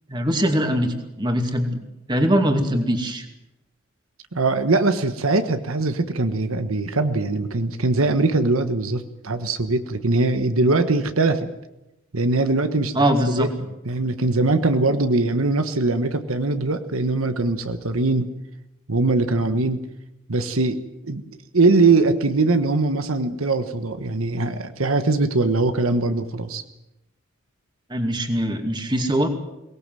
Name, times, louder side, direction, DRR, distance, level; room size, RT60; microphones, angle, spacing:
voice 1, 0.1-1.8 2.1-3.3 12.9-13.5 27.9-29.3, equal, 20° right, 4 dB, 2.4 m, -22 dB
voice 2, 4.3-11.5 12.1-13.5 13.8-18.3 18.9-19.8 20.3-21.2 21.5-26.6, right 3 dB, 90° right, 9 dB, 1.4 m, -21 dB
23.0 x 19.0 x 7.7 m, 0.93 s
head